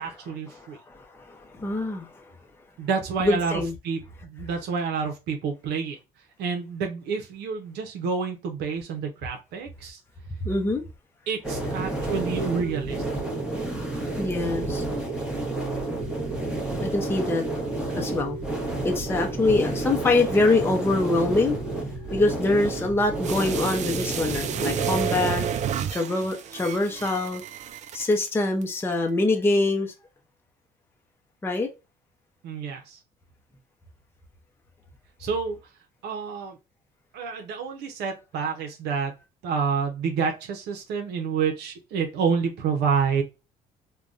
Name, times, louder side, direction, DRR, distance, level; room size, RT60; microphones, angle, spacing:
voice 1, 0.0-0.8 2.8-6.0 6.4-10.0 11.3-13.0 32.4-33.0 35.2-35.6 36.0-36.6 37.1-39.1 39.4-43.2, right 5 dB, 80° right, 0.7 m, -28 dB
voice 2, 0.5-2.3 3.2-3.7 10.4-10.8 14.2-14.8 16.8-17.5 17.9-18.4 18.8-21.6 22.1-25.5 25.9-27.4 27.9-29.9 31.4-31.7, left 2 dB, 15° left, 0.6 m, -24 dB
sound 1, 11.4-25.3, right 2 dB, 5° right, 1.0 m, -30 dB
sound 2, 23.2-28.3 28.6-28.7, right 8 dB, 45° right, 0.4 m, -31 dB
3.4 x 2.2 x 2.5 m
cardioid pair, 110°, 17 cm